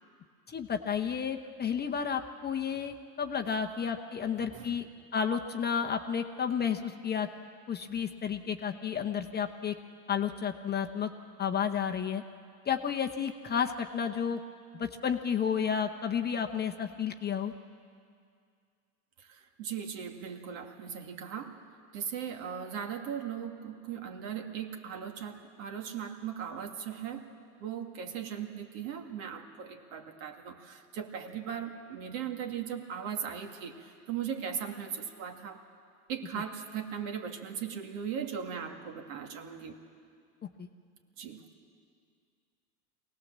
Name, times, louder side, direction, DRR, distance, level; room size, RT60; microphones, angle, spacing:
voice 1, 0.5-4.9 5.1-7.3 7.7-9.7 10.1-11.1 11.4-12.2 12.7-14.4 14.7-17.5 40.6-40.7, left 7 dB, 20° left, 5 dB, 0.9 m, -31 dB
voice 2, 4.5-4.8 19.2-21.6 21.9-27.3 27.6-35.6 36.1-39.8 41.2-41.4, right 8 dB, 60° right, 4 dB, 2.3 m, -38 dB
24.0 x 18.0 x 7.4 m, 2.2 s
hypercardioid pair, 105°, 47 cm